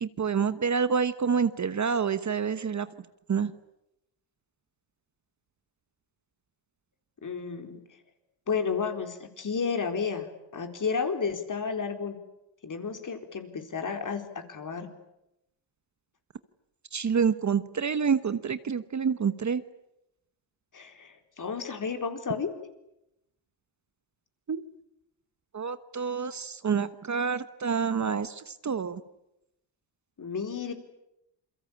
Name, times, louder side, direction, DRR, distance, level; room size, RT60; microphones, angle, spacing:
voice 1, 0.0-2.9 3.3-3.5 16.9-19.6 24.5-24.6 25.5-29.0, right 6 dB, 35° right, 13 dB, 1.2 m, -27 dB
voice 2, 7.2-7.8 8.5-12.2 12.6-14.9 20.7-22.5 30.2-30.7, left 5 dB, 40° left, 6 dB, 4.3 m, -32 dB
28.5 x 23.0 x 8.7 m, 0.87 s
cardioid pair, 85°, 47 cm